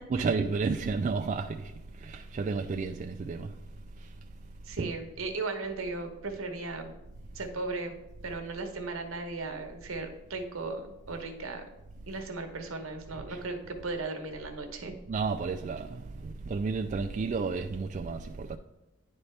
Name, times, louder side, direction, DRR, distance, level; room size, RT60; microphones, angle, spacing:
voice 1, 0.1-1.7 2.0-3.5 4.8-4.9 13.3-13.4 15.1-18.6, right 4 dB, 35° right, 0.3 m, -31 dB
voice 2, 4.7-6.9 7.3-8.0 8.2-11.6 12.1-14.9, right 3 dB, 75° right, 1.1 m, -36 dB
10.5 x 4.3 x 3.3 m
head